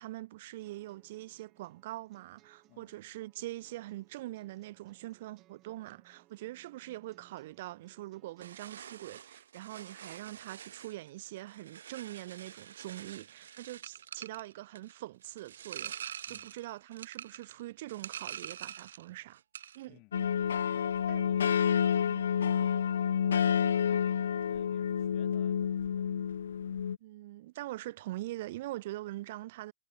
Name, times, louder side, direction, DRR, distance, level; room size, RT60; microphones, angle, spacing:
voice 1, 0.0-19.4 19.7-20.0 21.1-21.2 22.1-22.2 27.0-29.7, right 17 dB, 60° right, 2.3 m, -43 dB
sound 1, 0.6-8.6, right 16 dB, 35° right, 4.9 m, -65 dB
sound 2, 8.4-19.1 19.4-19.9, right 9 dB, 80° right, 0.4 m, -46 dB
voice 2, 19.9-26.1, left 26 dB, 45° left, 4.3 m, -61 dB
sound 3, 20.1-27.0, left 8 dB, 85° left, 0.5 m, -29 dB
hypercardioid pair, 125°, 0 cm